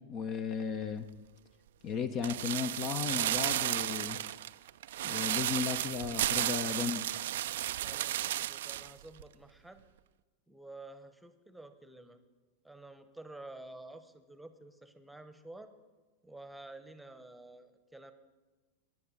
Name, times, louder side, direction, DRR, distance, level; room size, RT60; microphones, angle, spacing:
voice 1, 0.1-1.1 1.8-4.2 5.0-7.1, left 6 dB, 35° left, 11 dB, 0.7 m, -35 dB
sound 1, 2.2-8.9 9.2-9.3, right 13 dB, 55° right, 0.3 m, -33 dB
voice 2, 7.8-9.8 10.5-12.2 12.6-15.7 16.2-18.1, right 2 dB, ahead, 10 dB, 1.0 m, -50 dB
23.5 x 11.0 x 3.9 m, 1.3 s
figure-of-eight pair, 90°, 0 cm